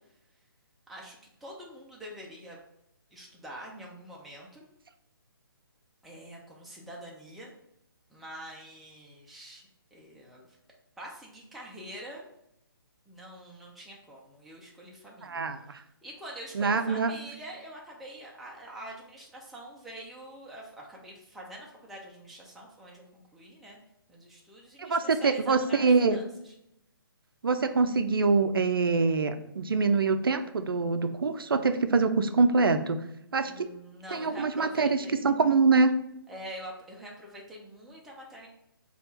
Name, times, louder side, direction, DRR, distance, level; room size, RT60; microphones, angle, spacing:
voice 1, 0.9-2.6 3.1-4.6 6.0-7.5 8.1-10.6 11.0-12.3 13.1-15.4 16.0-23.8 24.1-26.5 33.5-35.2 36.3-38.5, right 1 dB, ahead, -4 dB, 0.3 m, -45 dB
voice 2, 15.2-15.8 16.5-17.1 24.8-26.2 27.4-33.0 33.3-33.7 34.1-35.9, right 4 dB, 70° right, 9 dB, 0.4 m, -24 dB
3.5 x 2.4 x 4.0 m, 0.80 s
figure-of-eight pair, 140°, 12 cm